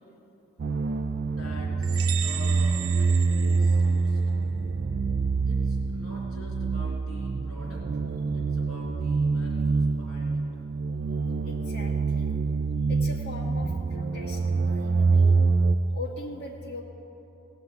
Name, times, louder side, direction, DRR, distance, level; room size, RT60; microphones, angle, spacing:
sound 1, 0.6-15.8, right 4 dB, 45° right, 0.4 m, -25 dB
voice 1, 1.2-4.2 5.5-8.0 8.3-10.6, equal, 85° left, -4 dB, 3.1 m, -46 dB
sound 2, 1.8-4.4, right 12 dB, 90° right, 0.6 m, -36 dB
voice 2, 11.4-12.3 12.9-15.3 15.9-16.8, left 2 dB, 50° left, -2 dB, 1.9 m, -40 dB
17.5 x 7.1 x 7.9 m, 2.9 s
head